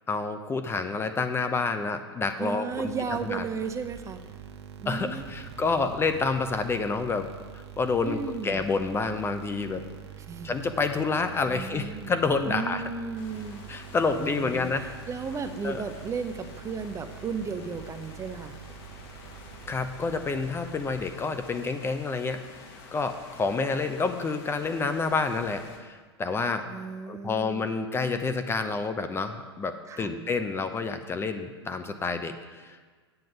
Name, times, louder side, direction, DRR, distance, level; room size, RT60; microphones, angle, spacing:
voice 1, 0.1-2.9 3.2-3.4 4.9-7.3 7.5-9.8 10.4-12.9 13.7-14.9 15.6-15.8 19.7-22.4 22.9-26.7 27.1-32.9, left 4 dB, 15° left, 9 dB, 0.6 m, -28 dB
voice 2, 2.4-4.2 4.8-5.3 8.0-8.6 10.3-10.5 11.5-12.1 12.5-13.6 14.1-14.7 15.1-18.5 26.7-27.7 29.9-30.1, right 5 dB, 20° right, 8 dB, 0.7 m, -34 dB
sound 1, 2.7-21.5, right 9 dB, 70° right, 1.0 m, -45 dB
sound 2, 13.2-25.8, left 4 dB, 50° left, 1.7 m, -49 dB
7.9 x 7.5 x 5.3 m, 1.5 s
hypercardioid pair, 105°, 14 cm